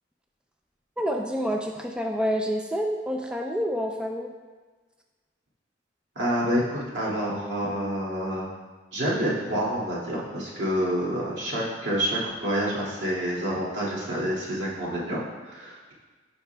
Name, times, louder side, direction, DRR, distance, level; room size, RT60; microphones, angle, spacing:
voice 1, 1.0-4.3, equal, 5° right, 2 dB, 0.4 m, -28 dB
voice 2, 6.2-8.5 8.9-15.2 15.4-15.9, equal, 75° right, -6 dB, 2.4 m, -28 dB
15.0 x 5.5 x 2.3 m, 1.4 s
head